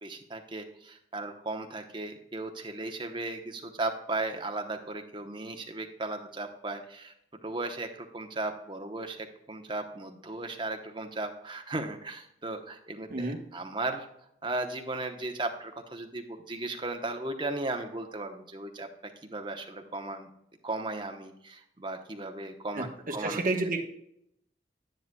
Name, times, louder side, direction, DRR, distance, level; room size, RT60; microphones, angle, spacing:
voice 1, 0.0-7.1 7.4-14.1 14.4-18.9 19.2-20.3 20.6-23.4, right 2 dB, 25° right, 5 dB, 0.9 m, -36 dB
voice 2, 22.8-23.8, right 2 dB, 50° right, 3 dB, 1.2 m, -30 dB
10.0 x 9.3 x 2.3 m, 0.76 s
head